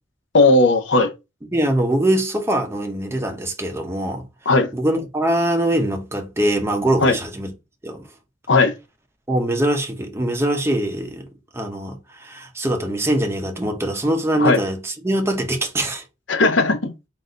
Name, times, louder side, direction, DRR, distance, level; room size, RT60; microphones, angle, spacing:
voice 1, 0.3-1.1 4.5-4.7 7.0-7.1 8.5-8.7 14.4-14.6 16.3-16.9, left 3 dB, 75° left, 0.8 m, -16 dB
voice 2, 1.5-4.2 4.7-7.5 7.8-8.0 9.3-11.3 11.5-16.0, right 1 dB, 15° right, 0.7 m, -22 dB
4.0 x 2.5 x 3.8 m
head